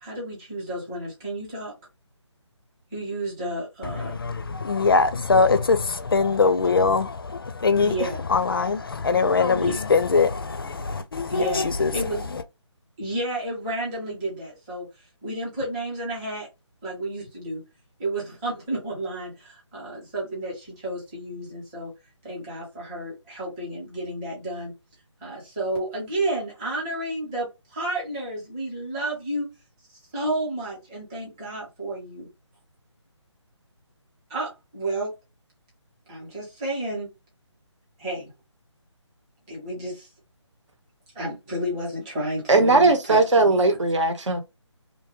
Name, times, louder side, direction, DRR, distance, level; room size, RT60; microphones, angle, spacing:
voice 1, 0.0-1.7 2.9-4.1 7.8-8.2 9.6-9.8 11.3-11.7 11.9-12.3 13.0-14.9 15.2-16.5 16.8-17.6 18.0-21.9 22.2-24.7 25.2-29.5 30.1-32.2 34.3-35.1 36.1-37.1 38.0-38.3 39.5-40.1 41.2-43.6, right 1 dB, 10° right, 0.8 m, -31 dB
voice 2, 3.8-12.0 12.3-12.4, left 4 dB, 50° left, 0.4 m, -22 dB
voice 3, 42.5-44.4, right 3 dB, 75° right, 1.0 m, -18 dB
2.7 x 2.2 x 2.9 m
figure-of-eight pair, 170°, 16 cm